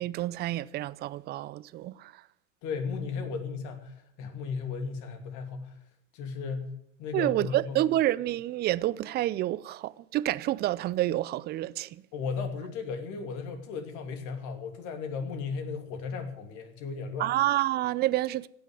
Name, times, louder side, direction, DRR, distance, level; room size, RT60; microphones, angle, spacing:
voice 1, 0.0-2.2 7.1-12.0 17.2-18.5, right 15 dB, 25° right, 0.5 m, -28 dB
voice 2, 2.6-5.8 6.1-6.7 7.0-7.8 12.1-17.3, left 5 dB, 50° left, 2.8 m, -35 dB
16.5 x 6.3 x 9.7 m
hypercardioid pair, 105°, 38 cm